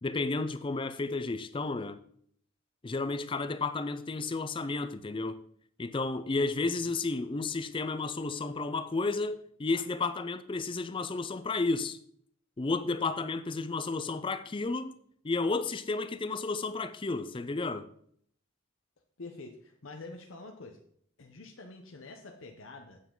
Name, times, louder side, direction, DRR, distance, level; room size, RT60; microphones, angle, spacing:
voice 1, 0.0-2.0 2.8-5.4 5.8-12.0 12.6-14.9 15.2-17.9, left 3 dB, 25° left, 0.4 m, -32 dB
voice 2, 6.6-6.9 19.2-20.8 21.2-23.0, left 3 dB, 75° left, 0.8 m, -46 dB
8.2 x 7.1 x 3.8 m
head